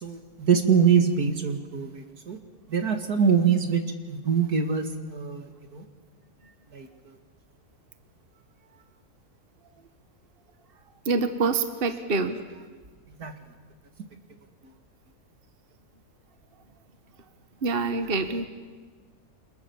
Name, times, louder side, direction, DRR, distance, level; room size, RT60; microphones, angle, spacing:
voice 1, 0.0-2.4 2.7-3.8 4.1-5.8 6.7-6.9 13.2-13.3, right 7 dB, 75° right, 5 dB, 2.7 m, -24 dB
voice 2, 11.0-12.4 17.6-18.5, right 4 dB, 40° right, 8 dB, 1.5 m, -26 dB
28.5 x 26.5 x 7.2 m, 1.4 s
omnidirectional pair, 1.7 m